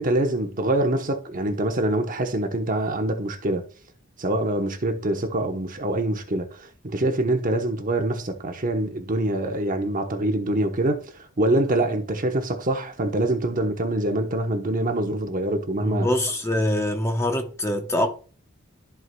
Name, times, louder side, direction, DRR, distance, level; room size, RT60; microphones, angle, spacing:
voice 1, 0.0-3.6 4.2-16.1, right 1 dB, 40° right, 0.9 m, -25 dB
voice 2, 15.8-18.1, left 1 dB, 15° left, 0.8 m, -24 dB
14.0 x 4.8 x 2.2 m
head